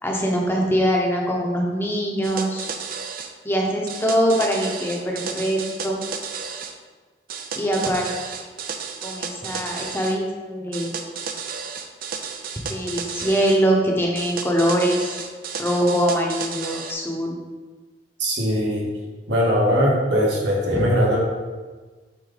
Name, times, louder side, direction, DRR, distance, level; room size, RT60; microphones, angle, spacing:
voice 1, 0.0-2.7 3.4-5.6 5.8-6.0 7.5-8.1 9.0-10.9 12.7-15.1 15.6-17.3, equal, 15° left, 0 dB, 1.0 m, -22 dB
sound 1, 2.2-3.3 3.9-6.7 7.3-10.2 10.7-13.6 14.1-16.9, right 6 dB, 55° right, 0.6 m, -33 dB
voice 2, 18.2-18.9 19.3-21.2, equal, 80° right, -4 dB, 1.8 m, -20 dB
7.8 x 4.1 x 4.1 m, 1.3 s
head